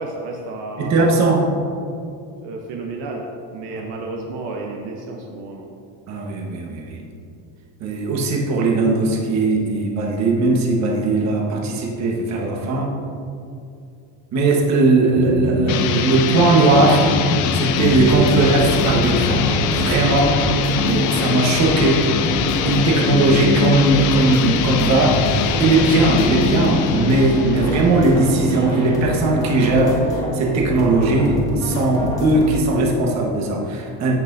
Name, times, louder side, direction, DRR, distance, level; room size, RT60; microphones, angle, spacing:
voice 1, 0.0-1.3 2.4-3.2 3.5-5.7, right 3 dB, 65° right, 0 dB, 1.0 m, -31 dB
voice 2, 0.8-1.4 6.1-7.0 7.8-12.9 14.3-17.1 17.5-19.5 19.7-20.4 20.8-22.0 22.6-25.2 25.6-34.2, right 2 dB, 40° right, -1 dB, 1.3 m, -18 dB
sound 1, 15.1-20.2, left 2 dB, 25° left, 0.9 m, -28 dB
sound 2, 15.7-28.2, left 7 dB, 45° left, 0.5 m, -23 dB
sound 3, 17.9-32.6, equal, 10° left, 1.4 m, -27 dB
15.0 x 5.6 x 2.7 m, 2.5 s
cardioid pair, 175°, 42 cm